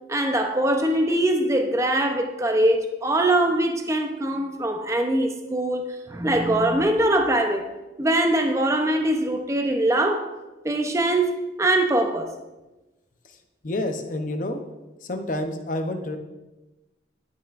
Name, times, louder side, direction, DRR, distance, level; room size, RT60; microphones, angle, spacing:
voice 1, 0.1-7.6 8.0-10.3 10.6-12.3, right 1 dB, 15° right, 0.6 m, -22 dB
voice 2, 13.6-14.6 15.0-16.2, left 1 dB, 45° left, 0.7 m, -28 dB
11.5 x 5.7 x 2.5 m
head